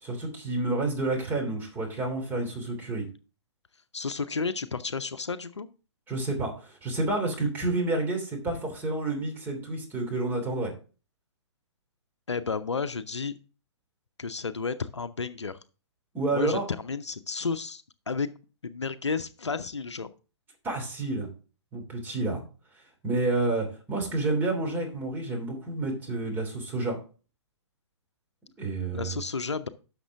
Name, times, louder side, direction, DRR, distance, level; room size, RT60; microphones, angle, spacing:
voice 1, 0.0-3.0 6.1-10.7 16.1-16.6 20.6-21.3 21.7-22.4 23.0-27.0 28.6-29.1, right 2 dB, 10° right, 1 dB, 2.9 m, -29 dB
voice 2, 3.9-5.7 12.3-13.3 14.2-15.6 16.3-18.3 18.6-20.1 28.9-29.7, left 4 dB, 75° left, 13 dB, 0.7 m, -32 dB
11.0 x 6.7 x 3.6 m, 0.35 s
figure-of-eight pair, 120°, 15 cm